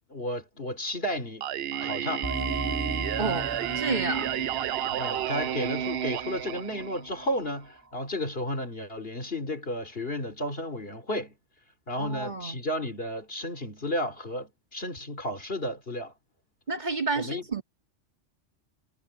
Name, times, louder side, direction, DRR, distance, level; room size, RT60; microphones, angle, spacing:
voice 1, 0.1-1.5 1.8-2.3 4.9-11.4 11.9-16.1 17.1-17.5, left 1 dB, 50° left, 3.3 m, -33 dB
Singing, 1.4-7.4, right 10 dB, 60° right, 0.7 m, -31 dB
sound 1, 2.2-7.5, right 2 dB, 15° right, 0.6 m, -36 dB
voice 2, 3.2-3.5 3.8-4.3 12.0-12.6 16.7-17.6, right 3 dB, 35° right, 2.3 m, -30 dB
omnidirectional pair, 1.3 m